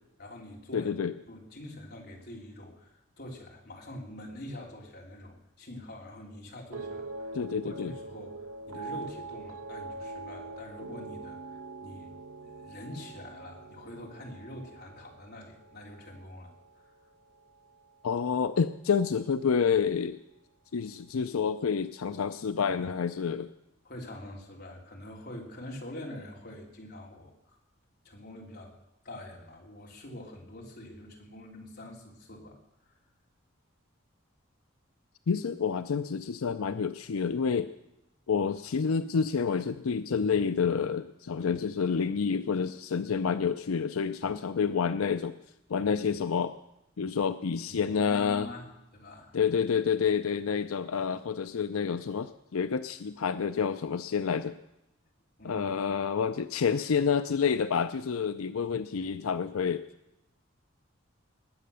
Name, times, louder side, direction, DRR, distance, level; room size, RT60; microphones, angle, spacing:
voice 1, 0.2-0.9 1.3-12.1 12.4-16.5 23.8-27.6 28.0-28.7 29.0-32.6 32.8-32.9 47.7-49.4 55.4-55.7, left 1 dB, 50° left, 0 dB, 3.3 m, -45 dB
voice 2, 0.7-1.1 7.3-7.9 18.0-20.2 20.7-23.5 35.3-37.7 38.3-45.4 45.7-46.5 47.0-48.5 49.3-54.5 55.4-59.8, left 6 dB, 90° left, 11 dB, 0.5 m, -28 dB
sound 1, 6.7-17.1 17.4-17.9, right 3 dB, 75° right, 0.9 m, -43 dB
20.0 x 8.4 x 6.9 m, 0.89 s
head